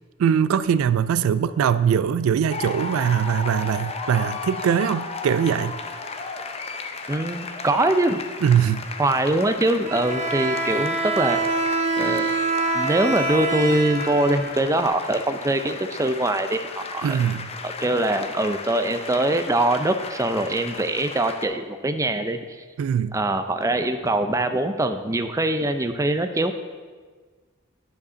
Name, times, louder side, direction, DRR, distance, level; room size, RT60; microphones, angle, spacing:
voice 1, 0.2-5.8 8.4-8.9 17.0-17.5 22.8-23.2, right 8 dB, 85° right, 15 dB, 0.3 m, -21 dB
sound 1, 2.5-21.5, left 4 dB, 30° left, 0.5 m, -35 dB
voice 2, 7.1-8.2 9.0-11.4 12.0-12.4 12.7-17.2 17.6-22.6 23.1-26.5, right 1 dB, 15° right, 8 dB, 0.5 m, -23 dB
Bowed string instrument, 9.8-14.9, right 3 dB, 35° right, 1.1 m, -25 dB
9.7 x 5.2 x 6.2 m, 1.5 s
head